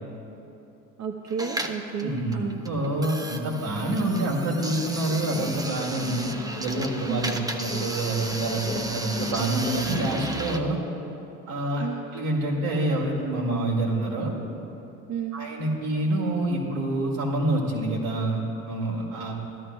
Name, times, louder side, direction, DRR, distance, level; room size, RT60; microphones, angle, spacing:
voice 1, 1.0-2.6 7.1-7.4 11.8-12.1 15.1-15.5, right 7 dB, 40° right, 2 dB, 0.8 m, -32 dB
sound 1, 1.3-10.6, right 1 dB, 10° right, 0.6 m, -35 dB
voice 2, 2.0-6.3 6.6-10.8 11.5-11.9 12.1-14.3 15.3-19.3, right 1 dB, 70° right, -2 dB, 2.2 m, -27 dB
sound 2, 5.1-10.5, left 4 dB, 90° left, 1.0 m, -38 dB
16.0 x 12.0 x 2.2 m, 2.9 s
hypercardioid pair, 60°, 43 cm